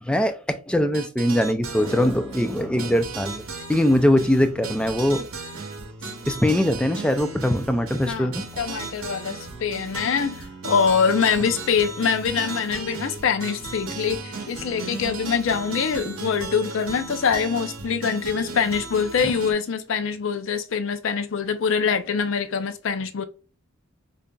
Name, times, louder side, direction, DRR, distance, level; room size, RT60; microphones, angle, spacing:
voice 1, 0.0-3.4 3.7-5.2 6.3-8.4, left 1 dB, 5° left, 0.3 m, -22 dB
sound 1, 0.9-19.5, right 3 dB, 85° right, 0.8 m, -36 dB
voice 2, 8.6-23.2, left 6 dB, 65° left, 0.5 m, -24 dB
5.2 x 2.5 x 2.2 m
head